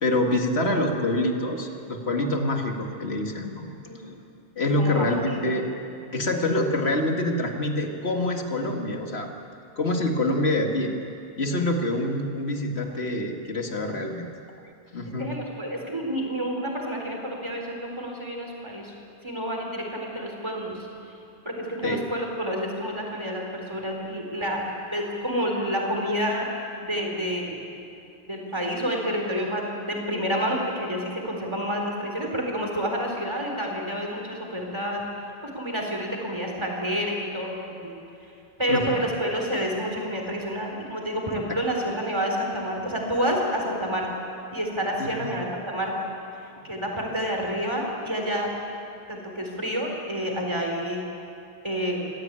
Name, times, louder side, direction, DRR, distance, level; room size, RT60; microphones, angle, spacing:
voice 1, 0.0-3.7 4.6-5.7 6.1-9.3 9.8-10.9 11.4-14.3 14.9-15.3 21.8-22.0 38.7-38.8 45.0-45.3, left 1 dB, 80° left, 3 dB, 2.4 m, -26 dB
voice 2, 4.8-5.5 15.2-18.9 19.2-20.9 21.4-26.5 26.8-27.6 28.3-35.1 35.4-37.9 38.6-44.1 44.5-45.9 46.6-48.5 49.1-51.0 51.6-52.0, equal, 25° right, 0 dB, 4.1 m, -29 dB
24.5 x 16.5 x 9.0 m, 2.7 s
omnidirectional pair, 1.1 m